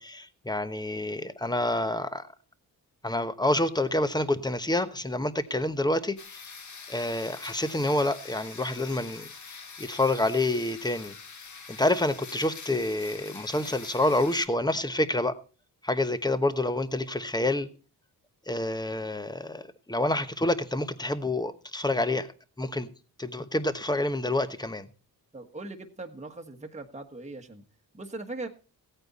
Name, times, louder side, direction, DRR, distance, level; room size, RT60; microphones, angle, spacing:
voice 1, 0.0-2.2 3.0-6.1 6.9-9.3 9.8-11.1 11.7-15.3 15.8-17.7 18.5-22.3 22.6-22.9 23.2-24.9, left 1 dB, 10° left, 1.1 m, -28 dB
sound 1, 6.2-14.5, left 5 dB, 45° left, 1.7 m, -45 dB
voice 2, 25.3-27.6 27.9-28.5, right 2 dB, 15° right, 1.5 m, -40 dB
15.5 x 9.0 x 4.2 m
cardioid pair, 80°, 39 cm